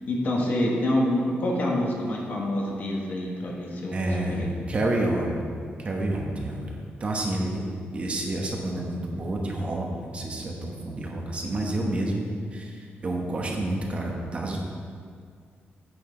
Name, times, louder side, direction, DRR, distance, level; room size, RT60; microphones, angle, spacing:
voice 1, 0.1-4.0 4.2-4.5, left 1 dB, 50° left, -2 dB, 1.4 m, -26 dB
voice 2, 3.9-5.4 5.8-7.6 7.9-14.6, right 1 dB, 30° right, 0 dB, 1.0 m, -29 dB
8.8 x 7.8 x 3.9 m, 2.2 s
wide cardioid pair, 165°, 4 cm